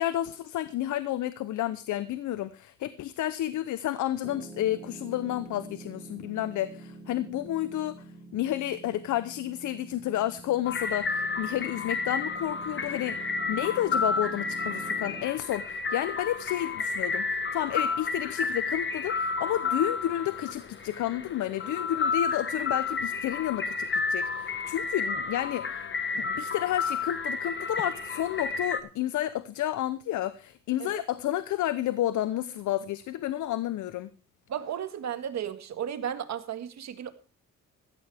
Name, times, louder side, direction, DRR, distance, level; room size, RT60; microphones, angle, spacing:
voice 1, 0.0-8.0 8.3-13.2 13.5-25.7 26.1-34.1, left 13 dB, 75° left, 14 dB, 0.8 m, -31 dB
Piano, 4.2-15.2, right 2 dB, 5° left, 5.1 m, -46 dB
sound 1, 10.6-28.8, left 4 dB, 40° left, 1.5 m, -31 dB
voice 2, 34.5-37.1, right 9 dB, 65° right, 9 dB, 1.8 m, -34 dB
16.0 x 13.5 x 3.5 m, 0.34 s
cardioid pair, 90°, 30 cm